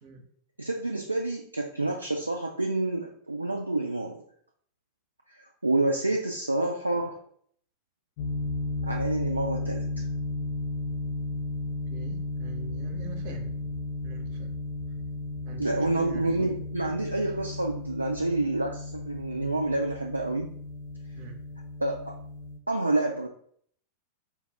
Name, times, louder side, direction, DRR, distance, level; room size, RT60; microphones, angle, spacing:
voice 1, 0.6-4.2 5.3-7.2 8.8-10.0 15.6-20.5 21.8-22.2 22.7-23.3, right 2 dB, 80° right, 1 dB, 0.3 m, -28 dB
sound 1, 8.2-22.6, left 2 dB, 45° left, 0.5 m, -34 dB
voice 2, 11.9-13.7 14.0-14.5 15.4-16.5 21.2-21.4, right 5 dB, 50° right, 4 dB, 0.7 m, -44 dB
4.5 x 2.4 x 3.3 m, 0.63 s
figure-of-eight pair, 90°, 0 cm